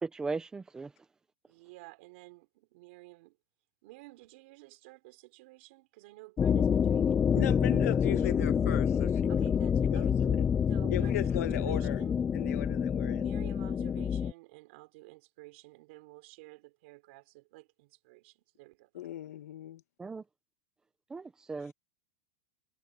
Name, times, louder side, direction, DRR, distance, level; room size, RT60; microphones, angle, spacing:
voice 1, 0.0-0.9 20.0-20.2 21.1-21.7, right 4 dB, 10° right, 1.0 m, -37 dB
voice 2, 1.5-3.4 3.8-7.2 9.3-10.1 10.7-12.2 13.2-19.1, right 23 dB, 50° right, 4.9 m, -51 dB
sound 1, 6.4-14.3, left 7 dB, 10° left, 0.3 m, -27 dB
voice 3, 7.3-9.2 9.9-10.5 10.9-12.0 12.3-13.3 18.9-19.8, left 13 dB, 80° left, 1.6 m, -37 dB
supercardioid pair, 170°, 8 cm